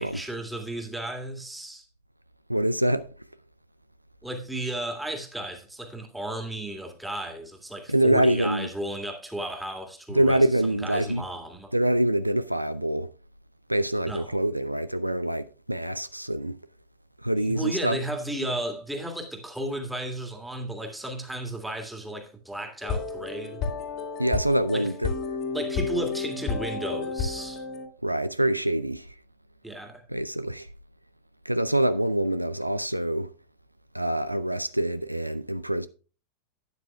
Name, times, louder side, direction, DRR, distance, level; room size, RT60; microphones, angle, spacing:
voice 1, 0.0-1.9 4.2-11.7 14.1-14.4 17.4-23.6 24.7-24.9 25.5-27.6 29.6-30.0, right 1 dB, 5° right, 2.0 m, -34 dB
voice 2, 2.5-3.1 7.9-8.7 10.1-11.2 11.7-13.1 13.7-16.6 17.2-18.0 24.2-24.9 28.0-29.1 30.1-30.7 31.5-33.3 33.9-35.9, right 1 dB, 90° right, 0.4 m, -25 dB
sound 1, 22.8-27.9, left 4 dB, 40° left, 2.0 m, -31 dB
12.0 x 9.3 x 2.3 m
figure-of-eight pair, 90°, 0 cm